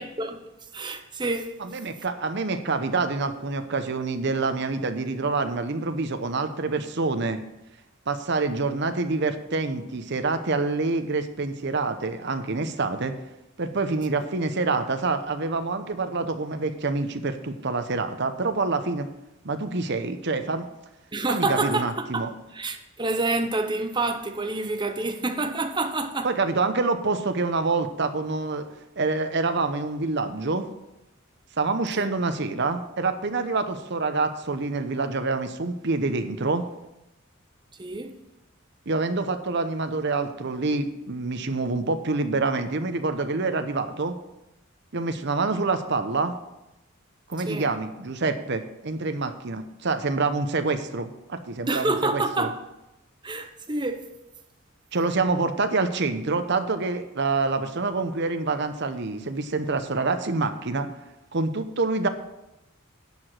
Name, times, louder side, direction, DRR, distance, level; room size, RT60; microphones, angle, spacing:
voice 1, 0.0-1.6 21.1-26.3 32.0-32.1 37.8-38.2 47.5-47.7 51.7-52.6 53.2-54.1, right 2 dB, 20° right, 0.8 m, -28 dB
voice 2, 1.6-7.4 8.1-13.1 13.6-19.1 19.4-20.7 21.3-22.3 26.2-28.7 29.0-30.7 31.6-36.6 38.9-44.2 44.9-46.3 47.3-52.5 54.9-60.9 61.3-62.1, right 3 dB, 55° right, 0.8 m, -26 dB
10.5 x 4.9 x 7.6 m
head